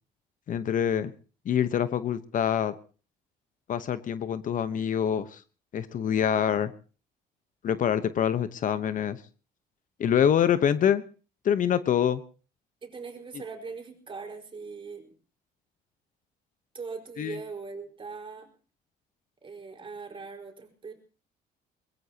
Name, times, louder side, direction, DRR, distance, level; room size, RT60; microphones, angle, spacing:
voice 1, 0.5-1.1 1.4-2.7 3.7-5.4 5.7-6.7 7.6-9.2 10.0-11.0 11.4-12.2 17.2-17.4, left 9 dB, 50° left, 12 dB, 1.1 m, -25 dB
voice 2, 12.8-15.1 16.7-18.5 19.4-20.9, right 4 dB, 30° right, 3 dB, 5.0 m, -40 dB
23.0 x 20.5 x 3.0 m, 0.37 s
cardioid pair, 110°, 17 cm